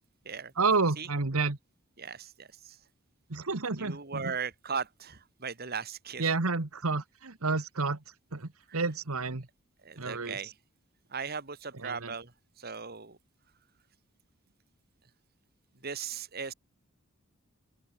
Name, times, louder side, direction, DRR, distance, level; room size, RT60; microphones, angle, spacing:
voice 1, 0.6-1.6 3.3-4.3 6.2-8.0 8.3-9.4 10.0-10.5 11.8-12.1, right 3 dB, 80° right, 1.6 m, -30 dB
voice 2, 2.0-2.8 3.8-6.3 8.7-8.8 9.8-10.5 11.1-12.3 12.6-13.2 15.8-16.5, right 6 dB, 45° right, 2.2 m, -38 dB
open air
head